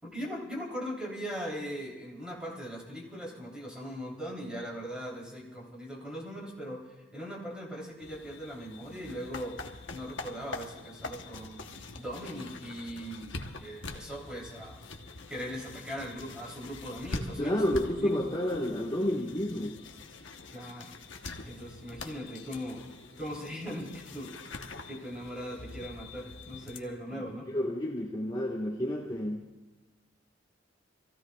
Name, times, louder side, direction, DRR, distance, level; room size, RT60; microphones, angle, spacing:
voice 1, 0.0-6.9 7.1-9.6 9.9-14.8 15.3-18.1 20.5-20.9 21.5-22.9 23.2-24.6 24.9-27.5, equal, 5° right, -2 dB, 3.6 m, -40 dB
sound 1, 8.0-26.8, left 3 dB, 75° left, 1.1 m, -44 dB
voice 2, 17.4-19.8 27.1-27.2 27.5-29.4, left 1 dB, 25° left, -4 dB, 1.6 m, -30 dB
27.5 x 15.5 x 2.4 m, 1.2 s
head